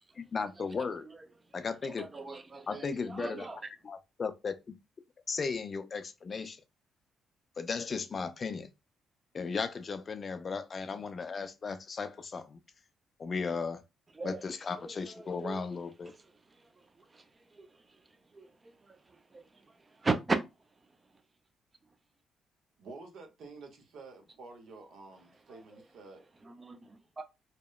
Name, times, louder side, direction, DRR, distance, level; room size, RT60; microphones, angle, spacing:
voice 1, 0.2-1.1 1.5-2.1 2.7-3.5 3.8-4.8 5.3-6.6 7.6-8.7 9.3-12.6 13.2-13.8 14.2-16.1, left 5 dB, 40° left, 0.3 m, -36 dB
voice 2, 1.8-3.6 14.2-14.4 15.4-15.6 17.1-17.2 17.6-17.7 18.3-18.5 19.3-19.4 20.0-20.4 26.5-27.2, right 3 dB, 25° right, 0.4 m, -35 dB
voice 3, 22.8-26.3, right 3 dB, 70° right, 0.7 m, -50 dB
2.8 x 2.0 x 2.2 m
cardioid pair, 90°, 0 cm